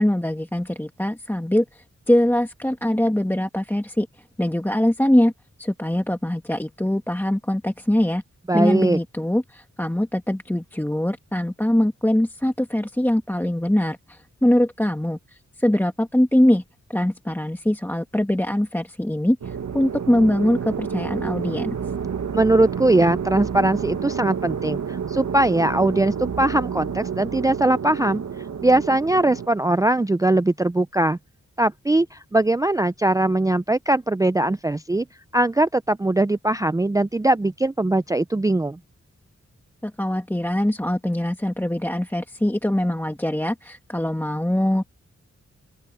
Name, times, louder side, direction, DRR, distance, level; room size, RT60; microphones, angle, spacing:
voice 1, 0.0-4.1 4.4-5.3 5.6-8.2 8.5-15.2 15.6-16.6 16.9-21.8 39.8-44.9, left 1 dB, 5° left, 1.5 m, -22 dB
voice 2, 8.5-9.0 22.3-28.2 28.6-31.2 31.6-35.1 35.3-38.8, right 2 dB, 10° right, 0.4 m, -20 dB
sound 1, 19.4-29.5, right 7 dB, 75° right, 1.5 m, -29 dB
open air
wide cardioid pair, 75°, 29 cm